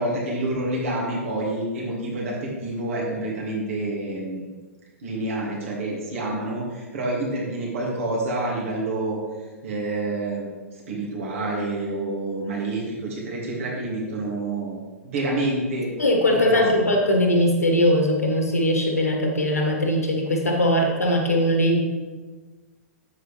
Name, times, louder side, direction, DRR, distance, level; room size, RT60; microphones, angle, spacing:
voice 1, 0.0-4.5 5.0-9.2 9.6-14.8 15.0-15.9 16.3-16.6, right 2 dB, 65° right, -4 dB, 2.5 m, -28 dB
voice 2, 16.0-21.8, left 1 dB, 90° left, 1 dB, 1.7 m, -20 dB
10.5 x 8.0 x 3.4 m, 1.3 s
figure-of-eight pair, 105°, 8 cm